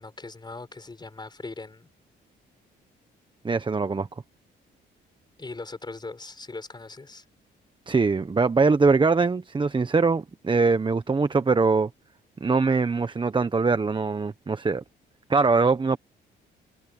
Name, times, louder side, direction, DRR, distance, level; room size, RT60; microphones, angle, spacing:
voice 1, 0.0-1.9 5.4-7.2, left 3 dB, 20° left, 5.6 m, -40 dB
voice 2, 3.4-4.1 7.9-11.9 12.4-14.8 15.3-16.0, right 4 dB, 25° right, 1.1 m, -22 dB
cardioid pair, 90°, 20 cm